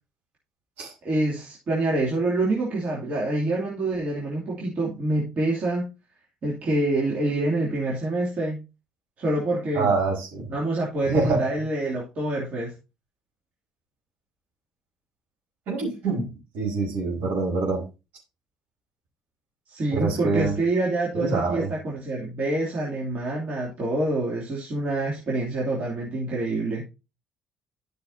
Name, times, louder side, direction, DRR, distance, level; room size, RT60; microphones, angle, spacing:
voice 1, 1.0-5.9 6.4-8.6 9.2-9.9 10.5-12.7 19.7-26.9, right 2 dB, 50° right, -5 dB, 2.7 m, -26 dB
voice 2, 9.7-10.5 11.0-11.4 15.7-16.3 16.5-17.8 19.9-20.5 21.1-21.7, right 3 dB, 65° right, -2 dB, 4.9 m, -25 dB
12.5 x 6.3 x 2.7 m, 0.28 s
hypercardioid pair, 55°, 3 cm